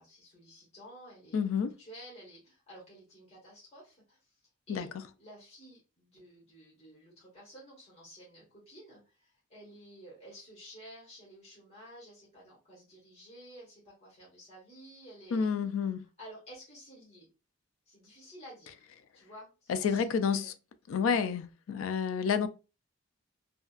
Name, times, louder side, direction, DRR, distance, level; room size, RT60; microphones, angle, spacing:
voice 1, 0.0-1.5 1.8-4.3 4.7-4.9 5.2-15.5 16.2-17.3 17.9-18.9 19.1-20.5, equal, 30° left, 1.3 m, -52 dB
voice 2, 1.3-1.8 4.7-5.0 15.3-16.0 19.7-20.5 20.9-22.5, left 6 dB, 80° left, 0.3 m, -29 dB
2.7 x 2.3 x 2.3 m
head